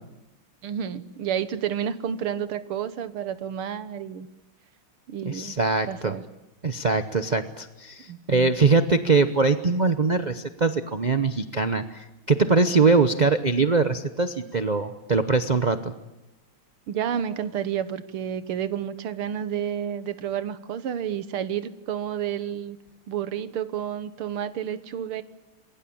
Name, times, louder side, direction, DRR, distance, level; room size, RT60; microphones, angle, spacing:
voice 1, 0.6-4.3 5.1-5.6 5.9-6.2 8.1-8.5 16.9-22.8 23.1-25.2, right 9 dB, 85° right, 13 dB, 2.1 m, -30 dB
voice 2, 5.2-6.2 6.6-15.9, right 4 dB, 55° right, 9 dB, 0.4 m, -22 dB
27.0 x 22.0 x 8.7 m, 0.98 s
omnidirectional pair, 2.3 m